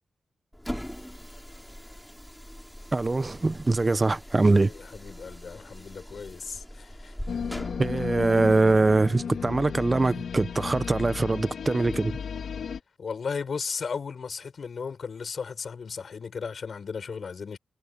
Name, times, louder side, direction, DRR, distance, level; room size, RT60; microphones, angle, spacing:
sound 1, 0.5-8.6, equal, 5° left, 3.2 m, -41 dB
voice 1, 2.9-4.7 7.8-12.2, right 3 dB, 25° right, 0.5 m, -23 dB
voice 2, 4.7-7.2 13.0-17.6, left 5 dB, 50° left, 6.5 m, -35 dB
sound 2, 7.3-12.8, left 6 dB, 65° left, 2.2 m, -34 dB
wide cardioid pair, 130°, 0 cm